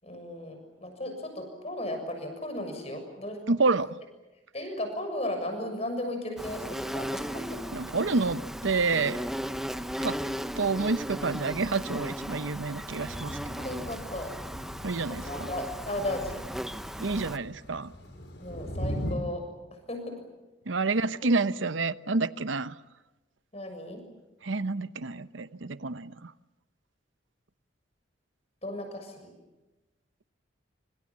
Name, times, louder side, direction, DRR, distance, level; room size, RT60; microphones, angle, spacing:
voice 1, 0.0-3.4 4.5-7.6 13.6-14.3 15.1-16.4 18.4-19.4 19.9-20.2 23.5-24.0 28.6-29.3, left 1 dB, 35° left, 6.9 m, -35 dB
voice 2, 3.5-4.0 7.7-9.2 10.0-10.2 10.6-13.6 14.8-15.5 17.0-17.9 20.7-22.8 24.4-26.3, right 3 dB, 80° right, 0.9 m, -28 dB
Insect, 6.4-17.4, equal, ahead, 0.8 m, -36 dB
Thunder / Rain, 13.1-19.1, equal, 60° left, 4.8 m, -40 dB
27.0 x 26.5 x 7.4 m
head